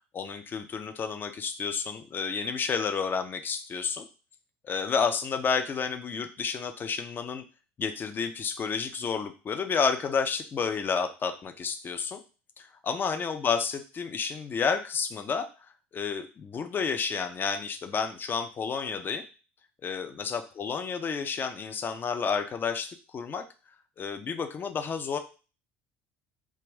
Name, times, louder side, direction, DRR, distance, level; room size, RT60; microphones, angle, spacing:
voice 1, 0.1-4.1 4.6-7.4 7.8-12.2 12.6-15.5 15.9-19.2 19.8-23.4 24.0-25.2, left 6 dB, 30° left, 7 dB, 0.4 m, -30 dB
2.4 x 2.1 x 3.3 m, 0.34 s
figure-of-eight pair, 65°, 7 cm